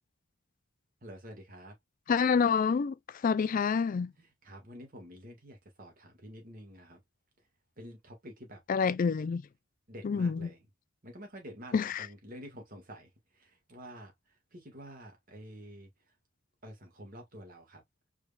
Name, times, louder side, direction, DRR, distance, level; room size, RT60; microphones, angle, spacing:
voice 1, 1.0-1.7 4.2-7.0 7.8-8.6 9.9-10.6 11.0-14.1 14.5-15.9 16.6-17.8, equal, 45° right, 1.9 m, -48 dB
voice 2, 2.1-2.9 3.2-4.1 8.7-9.4 10.0-10.5 11.7-12.1, left 6 dB, 45° left, 0.3 m, -27 dB
4.8 x 3.5 x 2.3 m
head